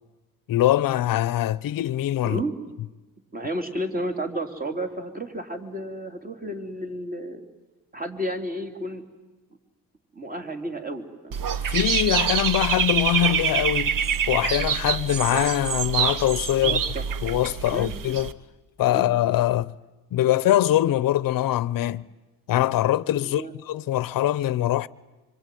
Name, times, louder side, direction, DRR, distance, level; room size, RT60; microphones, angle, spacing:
voice 1, 0.5-2.4 11.7-14.0 14.3-16.8 17.2-18.3 18.8-19.7 20.1-22.1 22.5-24.9, left 13 dB, 60° left, 0.8 m, -23 dB
voice 2, 3.3-7.4 7.9-9.0 10.1-11.4 16.6-17.0 17.7-17.9 18.9-19.1 23.2-23.5, right 1 dB, 25° right, 3.3 m, -32 dB
Dog / Bird, 11.3-18.3, right 7 dB, 60° right, 1.3 m, -25 dB
26.0 x 24.5 x 9.2 m
cardioid pair, 125°, 38 cm